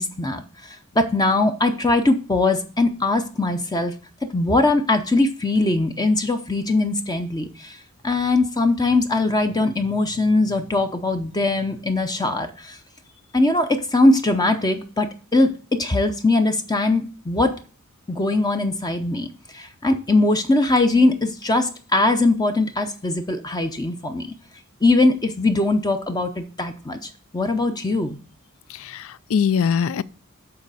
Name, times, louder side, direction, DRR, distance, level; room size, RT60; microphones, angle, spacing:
voice 1, 0.0-3.9 4.3-7.8 8.0-12.8 13.3-17.6 18.1-19.3 19.5-24.3 24.8-28.2, left 2 dB, 20° left, 0.6 m, -21 dB
voice 2, 28.7-30.0, left 7 dB, 65° left, 0.4 m, -22 dB
7.8 x 4.1 x 6.7 m
head